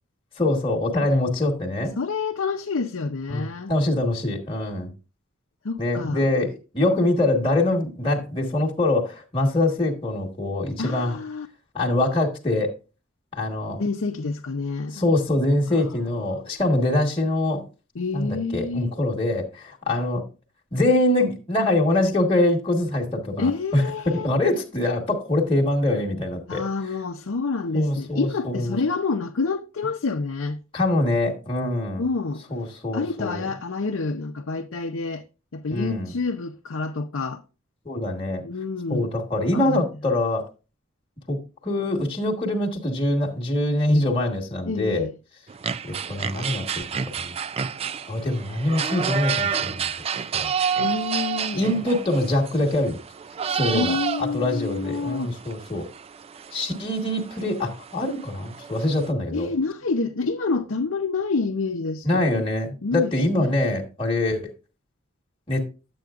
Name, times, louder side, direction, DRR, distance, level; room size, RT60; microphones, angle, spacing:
voice 1, 0.4-1.9 3.3-4.9 5.8-11.2 11.7-12.7 13.3-13.8 14.9-17.6 18.1-20.2 20.7-26.6 27.7-28.8 30.7-32.0 32.5-33.4 35.7-36.1 37.8-38.4 38.9-40.4 41.3-41.4 41.6-45.1 45.8-46.8 47.2-47.3 48.1-49.9 50.4-50.5 51.5-53.0 53.5-55.9 56.5-59.5 62.0-64.4 65.5-65.6, left 1 dB, 25° left, 1.3 m, -24 dB
voice 2, 2.0-3.7 5.6-6.3 10.8-11.5 13.8-15.0 15.7-15.8 16.1-16.5 17.9-18.9 23.4-24.3 26.5-30.6 32.0-32.5 32.9-35.2 35.5-37.4 38.4-39.1 39.5-40.0 44.7-45.1 50.8-51.6 53.7-55.3 59.3-62.1 62.3-62.5 62.8-63.5, left 4 dB, 75° left, 0.6 m, -28 dB
sound 1, 45.5-59.1, right 7 dB, 30° right, 0.3 m, -30 dB
10.5 x 7.8 x 2.4 m
head